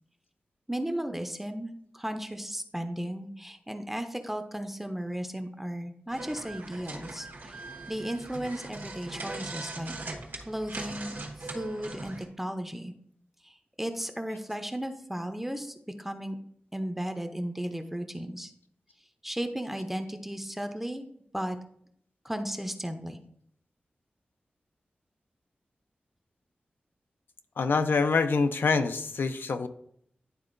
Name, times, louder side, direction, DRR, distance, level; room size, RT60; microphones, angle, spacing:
voice 1, 0.7-7.6 7.9-9.9 10.4-12.9 13.4-16.4 16.7-18.5 19.2-21.1 21.3-21.6 22.2-23.2, right 1 dB, 5° right, 6 dB, 0.5 m, -35 dB
sound 1, 6.1-12.3, right 2 dB, 70° right, 1.1 m, -40 dB
voice 2, 27.6-29.7, left 4 dB, 80° left, 8 dB, 0.5 m, -25 dB
10.5 x 3.8 x 2.5 m, 0.69 s
wide cardioid pair, 90°, 4 cm